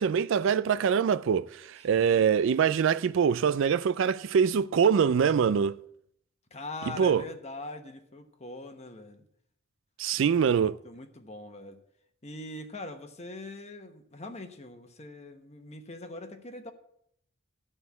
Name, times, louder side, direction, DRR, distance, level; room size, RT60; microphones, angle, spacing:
voice 1, 0.0-5.8 7.0-7.2 10.0-10.8, right 7 dB, 65° right, 0.3 m, -24 dB
voice 2, 1.9-2.3 6.5-9.2 10.1-10.6 10.8-11.8 12.2-16.7, left 2 dB, 30° left, 1.1 m, -42 dB
13.0 x 4.4 x 8.1 m
head